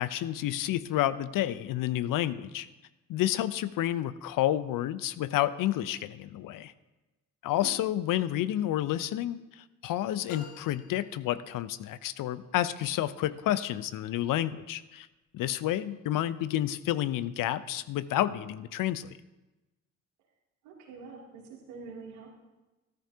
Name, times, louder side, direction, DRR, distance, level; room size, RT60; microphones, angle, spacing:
voice 1, 0.0-2.7 3.1-6.7 7.4-15.1 15.3-19.2, left 13 dB, 55° left, 15 dB, 0.6 m, -30 dB
sound 1, 10.3-12.0, left 4 dB, 90° left, 1.3 m, -49 dB
voice 2, 20.6-22.4, right 4 dB, 75° right, -3 dB, 2.9 m, -45 dB
13.5 x 13.0 x 2.8 m, 1.1 s
hypercardioid pair, 50°, 38 cm